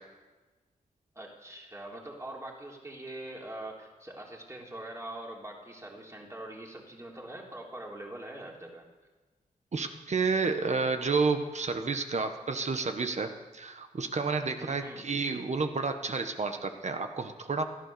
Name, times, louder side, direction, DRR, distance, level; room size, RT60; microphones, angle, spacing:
voice 1, 1.2-8.9 14.6-15.0, right 1 dB, 20° right, -1 dB, 3.6 m, -43 dB
voice 2, 9.7-17.6, right 4 dB, 50° right, 6 dB, 1.4 m, -30 dB
16.0 x 13.0 x 7.0 m, 1.2 s
wide cardioid pair, 105°, 15 cm